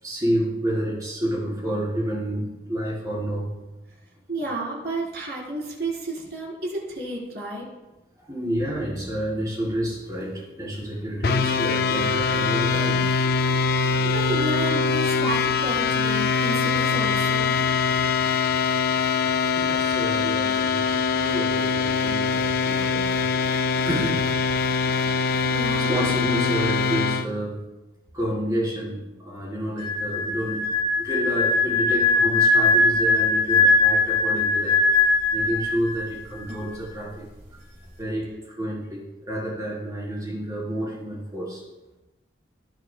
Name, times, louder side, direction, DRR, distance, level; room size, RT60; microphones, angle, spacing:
voice 1, 0.0-3.6 8.2-13.3 19.6-23.2 23.7-24.3 25.5-27.6 28.1-30.6 31.0-37.3 38.0-41.6, equal, 20° right, -5 dB, 4.1 m, -29 dB
voice 2, 4.3-7.7 14.0-17.6 25.4-25.9, right 1 dB, 60° right, -4 dB, 4.3 m, -31 dB
sound 1, 11.2-27.3, left 5 dB, 55° left, 0.4 m, -23 dB
sound 2, 29.8-36.2 36.4-36.7, left 3 dB, 40° right, 1.9 m, -20 dB
18.5 x 10.5 x 2.3 m, 1.1 s
head